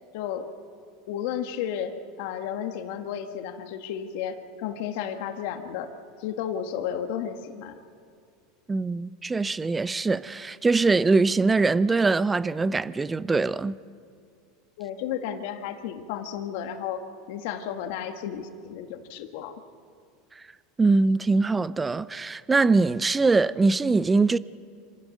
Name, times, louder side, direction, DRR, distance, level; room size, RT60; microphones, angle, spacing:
voice 1, 0.1-0.5 1.1-5.9 6.2-7.7 14.8-19.5, left 9 dB, 70° left, 1.7 m, -33 dB
voice 2, 8.7-13.8 20.8-24.4, right 3 dB, 15° right, 0.5 m, -22 dB
26.5 x 15.0 x 6.5 m
supercardioid pair, 115°, 0 cm